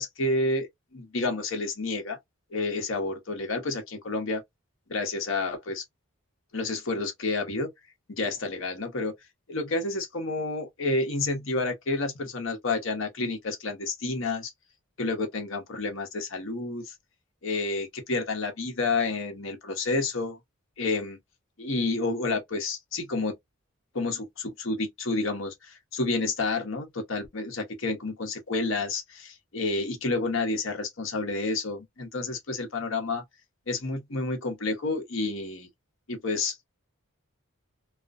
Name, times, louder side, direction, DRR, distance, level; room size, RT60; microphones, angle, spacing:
voice 1, 0.0-2.2 2.5-4.4 4.9-5.8 6.5-7.7 8.1-9.1 9.5-14.5 15.0-16.9 17.4-20.4 20.8-21.2 21.6-23.3 23.9-33.2 33.7-35.7 36.1-36.6, left 3 dB, 60° left, 0.9 m, -30 dB
2.4 x 2.2 x 2.4 m
head